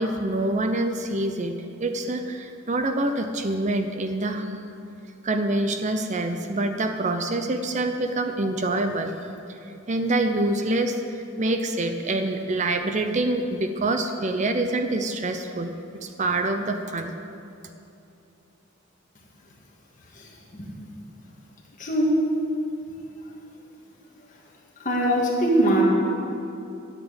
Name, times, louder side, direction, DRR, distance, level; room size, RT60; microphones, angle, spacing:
voice 1, 0.0-1.5 1.8-4.5 5.2-9.2 9.9-11.0 11.4-15.7 16.0-17.2, right 2 dB, 35° right, 6 dB, 0.6 m, -26 dB
voice 2, 20.1-20.7 21.8-22.3 24.8-25.8, right 1 dB, 40° left, -2 dB, 2.2 m, -22 dB
10.5 x 8.5 x 8.7 m, 2.8 s
head